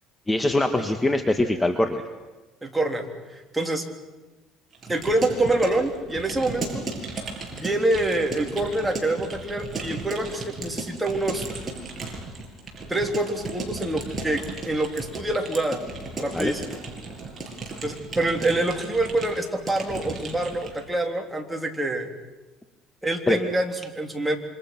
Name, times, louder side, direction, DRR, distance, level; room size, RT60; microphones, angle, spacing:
voice 1, 0.3-2.0 16.3-16.5 23.3-23.4, left 2 dB, 15° left, 6 dB, 1.6 m, -22 dB
voice 2, 2.6-3.1 3.3-3.8 4.9-6.8 7.5-11.5 12.9-15.8 16.2-16.8 17.8-22.1 23.0-24.4, right 2 dB, 10° right, 3 dB, 3.4 m, -26 dB
Keyboard (musical) / Computer keyboard, 4.7-20.8, right 3 dB, 25° right, 7.2 m, -35 dB
27.5 x 25.5 x 6.1 m, 1.2 s
cardioid pair, 105°, 0 cm